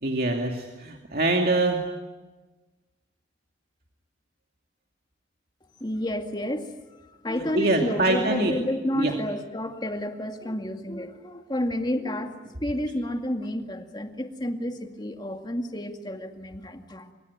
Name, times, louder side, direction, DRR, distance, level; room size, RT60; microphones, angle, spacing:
voice 1, 0.0-1.8 7.5-8.5 8.9-9.1, right 2 dB, 55° right, 2 dB, 2.5 m, -24 dB
voice 2, 5.8-6.7 7.1-12.3 12.6-17.1, left 1 dB, 25° left, 5 dB, 2.2 m, -30 dB
25.5 x 24.0 x 9.7 m, 1.2 s
head